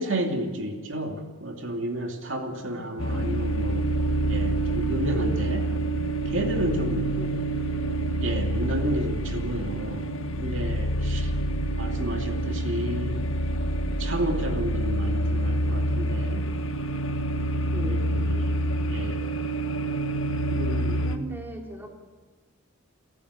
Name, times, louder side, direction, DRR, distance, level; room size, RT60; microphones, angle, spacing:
voice 1, 0.0-3.8 4.3-5.6 6.3-7.2 8.2-10.0 10.4-11.3 11.8-13.3 14.0-16.4 17.7-18.6 18.9-19.2 20.5-21.1, right 1 dB, 60° right, 3 dB, 2.7 m, -31 dB
voice 2, 2.6-3.9 5.1-5.4 7.1-7.8 17.6-18.1 21.0-21.9, right 1 dB, 10° right, 1 dB, 3.1 m, -39 dB
sound 1, 3.0-21.2, right 1 dB, 75° left, 1.6 m, -27 dB
29.0 x 14.5 x 8.5 m, 1.4 s
head